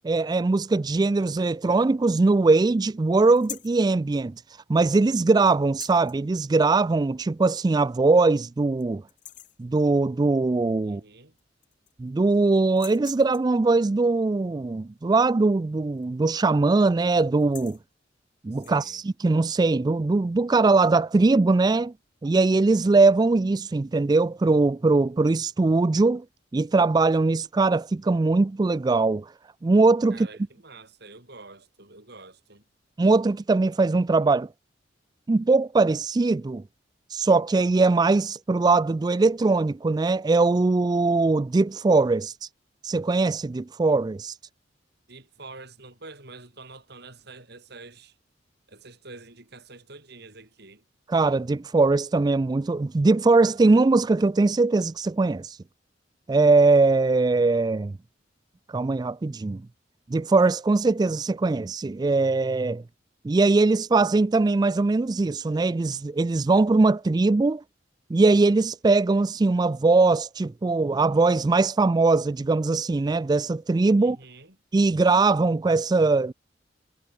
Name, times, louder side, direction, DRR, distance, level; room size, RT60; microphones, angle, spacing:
voice 1, 0.0-4.3 4.7-9.0 9.6-11.0 12.0-17.8 18.4-21.9 22.2-26.2 26.5-29.3 29.6-30.3 33.0-34.5 35.3-36.6 37.1-42.5 42.8-44.4 51.1-55.6 56.3-57.9 58.7-59.6 60.1-62.8 63.2-67.6 68.1-74.2 74.7-76.3, right 3 dB, 20° right, 0.3 m, -21 dB
sound 1, 3.3-3.8 5.6-6.2 7.5-7.6 8.1-8.2 8.6-8.8 9.1-9.6 11.0-11.1 11.4-12.1 12.7-13.6 15.9-16.2 16.5-16.8 17.3-17.8 18.5-19.0, left 12 dB, 45° left, 5.0 m, -44 dB
voice 2, 10.8-11.4 18.5-19.0 30.1-32.6 45.1-48.2 48.7-50.8 74.0-74.6, right 3 dB, 60° right, 5.6 m, -47 dB
head